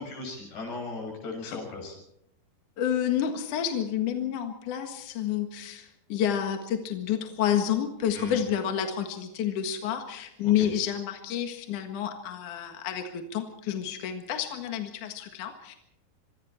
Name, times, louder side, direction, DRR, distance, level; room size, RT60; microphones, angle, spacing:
voice 1, 0.0-2.0 8.1-8.4 10.4-10.7, left 3 dB, 80° left, 2 dB, 8.7 m, -37 dB
voice 2, 2.8-15.7, left 9 dB, 60° left, 5 dB, 2.9 m, -29 dB
25.5 x 23.5 x 4.4 m, 0.82 s
omnidirectional pair, 4.6 m